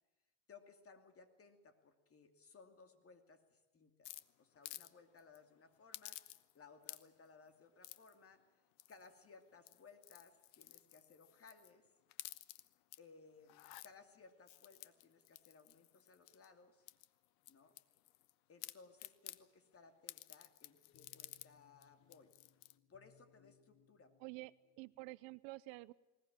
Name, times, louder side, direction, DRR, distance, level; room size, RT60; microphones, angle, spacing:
voice 1, 0.5-4.1 4.4-8.4 8.9-11.9 13.0-16.9 17.5-17.8 18.5-22.4 22.9-24.1, left 4 dB, 30° left, 7 dB, 2.7 m, -62 dB
sound 1, 4.0-4.9 5.2-5.4 5.9-6.6 6.8-7.3 7.8-8.1 8.8-9.2 9.6-11.7 12.1-13.0 13.4-13.9 14.5-16.5 16.9-18.3 18.6-19.4 20.1-21.5 21.8-21.9 22.1-22.7, left 18 dB, 90° left, 1.1 m, -53 dB
sound 2, 20.9-25.0, left 8 dB, 45° left, 1.5 m, -72 dB
voice 2, 24.2-25.9, right 22 dB, 70° right, 18 dB, 0.8 m, -50 dB
20.5 x 19.5 x 8.8 m, 1.1 s
cardioid pair, 130°, 49 cm